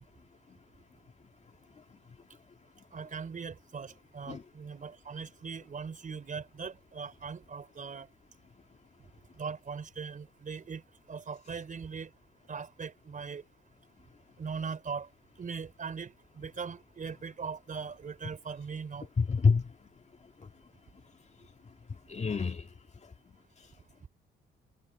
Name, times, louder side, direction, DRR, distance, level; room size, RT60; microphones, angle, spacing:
voice 1, 2.9-8.1 9.4-10.8 11.1-12.1 12.5-13.4 14.4-15.1 15.4-19.1, right 5 dB, 40° right, 4.6 m, -40 dB
voice 2, 19.2-19.7 20.4-20.5 22.1-22.7, left 5 dB, 35° left, 2.2 m, -27 dB
cardioid pair, 90°, 20 cm